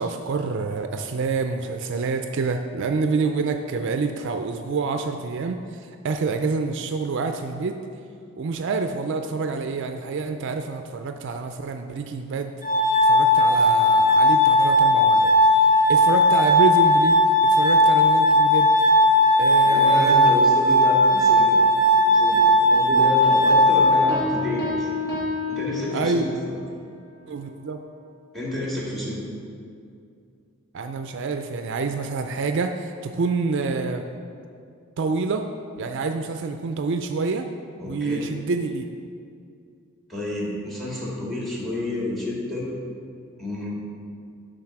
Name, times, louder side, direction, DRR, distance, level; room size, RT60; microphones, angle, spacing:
voice 1, 0.0-7.8 8.4-12.5 13.0-17.1 17.4-18.7 19.4-20.5 25.9-26.3 27.3-27.8 30.7-34.0 35.0-35.4 35.7-37.5 37.8-38.9, right 4 dB, 60° right, 6 dB, 0.4 m, -27 dB
Glass, 12.6-24.6, left 1 dB, 40° left, 0.9 m, -17 dB
voice 2, 19.6-21.6 22.1-24.9 25.5-26.5 28.3-29.2 37.8-38.2 40.1-42.7 43.4-43.7, left 1 dB, ahead, -4 dB, 2.0 m, -30 dB
Piano, 24.1-26.5, left 3 dB, 15° left, 1.6 m, -29 dB
7.4 x 5.2 x 5.9 m, 2.4 s
head